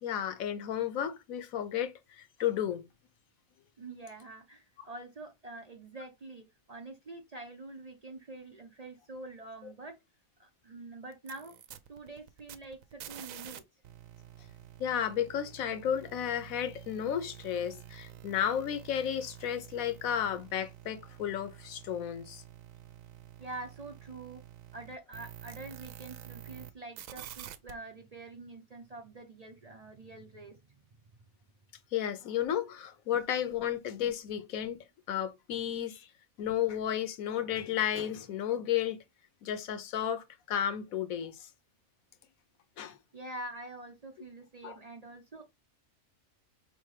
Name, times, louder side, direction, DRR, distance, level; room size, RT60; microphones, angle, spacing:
voice 1, 0.0-2.8 14.8-22.4 31.9-36.1 36.4-39.0 39.4-41.5 42.8-43.0 44.6-44.8, left 10 dB, 90° left, 1.2 m, -33 dB
voice 2, 3.8-10.0 10.4-11.6 11.9-13.6 23.4-24.4 24.7-30.8 43.1-45.4, right 2 dB, 40° right, 0.6 m, -46 dB
sound 1, 11.1-13.6 13.8-26.7 27.0-27.7, right 11 dB, 75° right, 1.0 m, -49 dB
4.9 x 3.3 x 3.1 m
omnidirectional pair, 1.4 m